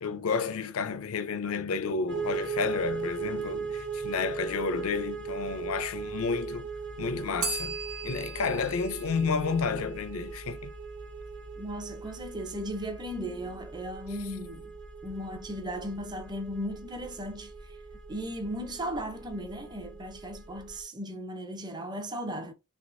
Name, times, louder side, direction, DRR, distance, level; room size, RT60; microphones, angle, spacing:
voice 1, 0.0-6.7 7.0-7.8 8.0-10.7, left 5 dB, 70° left, 0.5 m, -31 dB
sound 1, 2.1-20.8, right 5 dB, 55° right, 1.1 m, -39 dB
Bell, 7.4-10.2, right 5 dB, 85° right, 0.9 m, -38 dB
voice 2, 11.6-14.7 15.0-17.8 18.1-22.5, equal, 20° right, 0.5 m, -36 dB
3.4 x 3.0 x 2.5 m
head